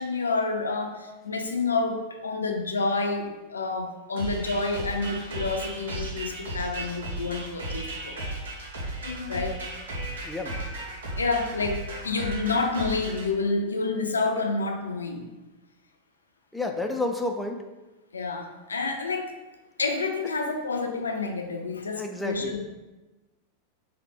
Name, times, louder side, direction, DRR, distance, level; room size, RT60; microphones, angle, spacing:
voice 1, 0.0-8.2 9.0-9.6 11.2-15.2 18.1-19.4 19.8-22.6, left 3 dB, 75° left, 3 dB, 0.4 m, -29 dB
sound 1, 4.2-13.3, right 2 dB, 65° right, 0.8 m, -35 dB
voice 2, 10.2-10.6 16.5-17.6 22.0-22.6, left 2 dB, 5° left, 2 dB, 0.3 m, -30 dB
3.3 x 2.1 x 4.2 m, 1.1 s
figure-of-eight pair, 90°, 0 cm